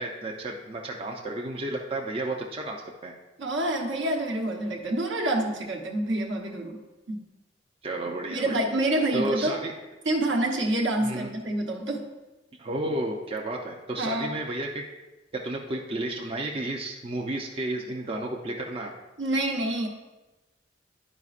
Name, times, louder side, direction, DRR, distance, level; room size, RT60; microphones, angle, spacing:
voice 1, 0.0-3.1 7.8-8.6 9.1-9.7 11.0-11.3 12.6-14.8 15.4-18.9, right 1 dB, 30° right, 0 dB, 0.5 m, -32 dB
voice 2, 3.4-6.8 7.1-7.2 8.3-9.6 10.0-12.1 14.0-14.4 19.2-19.9, right 1 dB, 70° right, 0 dB, 1.0 m, -27 dB
11.0 x 5.0 x 2.4 m, 1.1 s
head